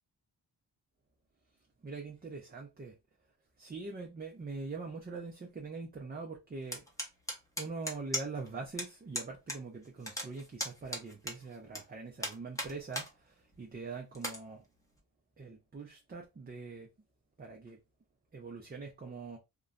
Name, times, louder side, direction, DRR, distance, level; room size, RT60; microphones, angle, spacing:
voice 1, 1.8-3.0 3.6-6.8 7.6-14.6 15.4-16.9 17.4-17.8 18.3-19.4, right 4 dB, 25° right, 0.5 m, -43 dB
sound 1, 6.7-8.5 8.8-8.9 9.1-9.6 9.8-11.8 12.2-13.1 13.5-13.6 14.1-14.4, left 1 dB, 10° left, 0.8 m, -37 dB
2.9 x 2.1 x 2.4 m
wide cardioid pair, 90°, 41 cm